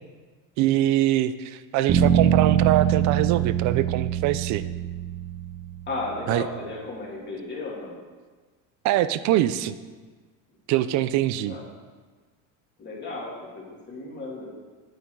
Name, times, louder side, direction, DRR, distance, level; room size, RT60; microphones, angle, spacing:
voice 1, 0.6-4.6 6.3-6.5 8.8-9.7 10.7-11.6, right 13 dB, 45° right, 14 dB, 0.5 m, -23 dB
sound 1, 1.9-6.0, right 10 dB, 30° right, 0.8 m, -23 dB
voice 2, 5.9-8.0 11.4-11.6 12.8-14.5, left 2 dB, 25° left, -3 dB, 2.6 m, -34 dB
9.1 x 8.5 x 4.7 m, 1.4 s
cardioid pair, 150°, 40 cm